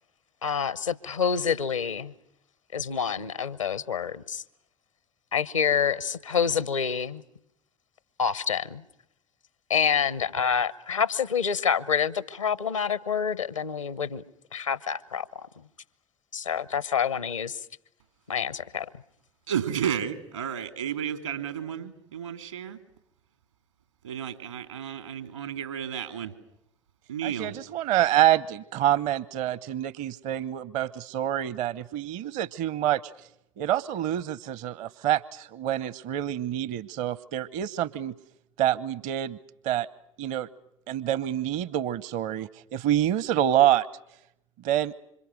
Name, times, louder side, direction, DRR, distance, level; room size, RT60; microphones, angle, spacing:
voice 1, 0.4-2.1 2.7-4.4 5.3-7.2 8.2-8.8 9.7-14.2 14.5-15.5 16.3-17.6 18.3-18.9, left 7 dB, 85° left, 18 dB, 1.0 m, -27 dB
voice 2, 19.5-22.8 24.0-26.3 27.1-27.6, right 9 dB, 80° right, 8 dB, 2.9 m, -32 dB
voice 3, 27.2-33.3 33.6-38.1 38.6-39.4 39.6-39.9 40.2-40.5 40.9-43.9 44.6-44.9, right 12 dB, 50° right, 20 dB, 0.9 m, -27 dB
27.5 x 26.0 x 6.4 m, 0.80 s
figure-of-eight pair, 65°, 16 cm